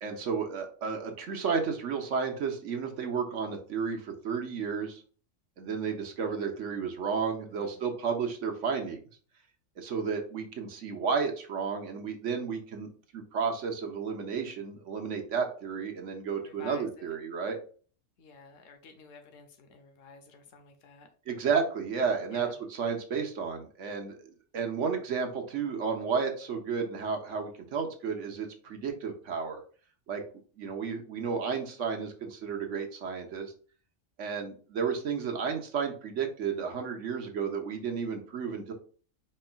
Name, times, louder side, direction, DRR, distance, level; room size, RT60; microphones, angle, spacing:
voice 1, 0.0-5.0 5.6-9.0 9.8-17.6 21.3-29.6 30.1-30.2 30.6-33.5 34.2-38.7, right 6 dB, 75° right, 3 dB, 1.3 m, -32 dB
voice 2, 16.4-17.2 18.2-21.1 22.3-22.5, left 5 dB, 90° left, 5 dB, 1.1 m, -52 dB
4.7 x 4.4 x 2.2 m, 0.41 s
omnidirectional pair, 1.3 m